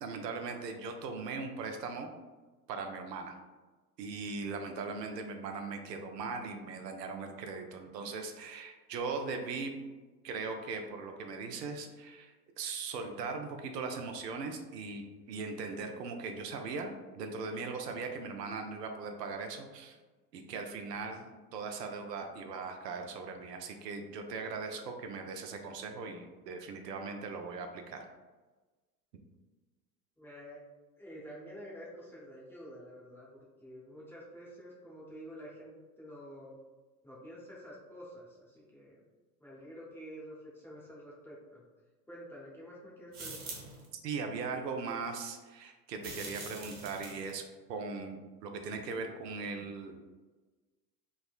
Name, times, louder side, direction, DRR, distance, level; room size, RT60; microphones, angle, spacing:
voice 1, 0.0-2.1 2.7-3.4 4.0-9.7 10.2-20.0 20.3-28.1 43.9-47.4 47.7-50.0, right 4 dB, 85° right, 5 dB, 0.5 m, -39 dB
voice 2, 30.2-30.6 31.0-36.5 37.0-39.0 39.4-41.6 42.1-43.5, equal, 5° left, -6 dB, 0.6 m, -49 dB
sound 1, 43.1-43.8 46.0-47.3, right 3 dB, 45° right, 1.1 m, -44 dB
3.5 x 2.1 x 2.3 m, 1.3 s
hypercardioid pair, 90°, 48 cm